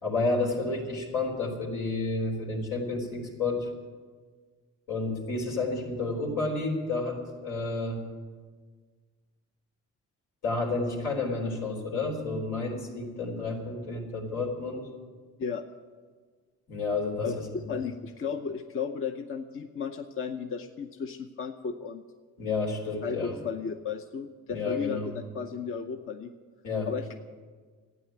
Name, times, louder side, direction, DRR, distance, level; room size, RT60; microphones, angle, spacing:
voice 1, 0.0-3.7 4.9-8.0 10.4-14.8 16.7-17.3 22.4-23.4 24.5-25.1 26.6-26.9, left 3 dB, 85° left, 0 dB, 3.9 m, -30 dB
voice 2, 17.2-22.0 23.0-26.3 26.9-27.2, left 6 dB, 45° left, 6 dB, 0.8 m, -34 dB
12.5 x 9.5 x 9.9 m, 1.5 s
cardioid pair, 90°, 30 cm